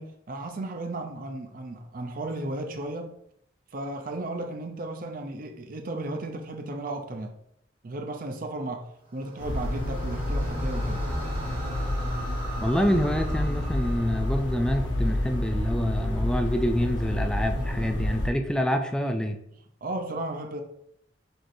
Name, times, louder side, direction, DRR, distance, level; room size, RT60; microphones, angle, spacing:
voice 1, 0.0-3.2 3.7-7.4 7.8-11.1 19.8-20.6, right 2 dB, 50° right, 0.5 m, -34 dB
sound 1, 9.0-15.3, right 1 dB, 25° right, 1.7 m, -39 dB
sound 2, 9.4-18.3, left 1 dB, 75° left, 0.9 m, -29 dB
voice 2, 12.6-19.4, equal, 5° left, 0.3 m, -26 dB
6.0 x 3.3 x 2.6 m
head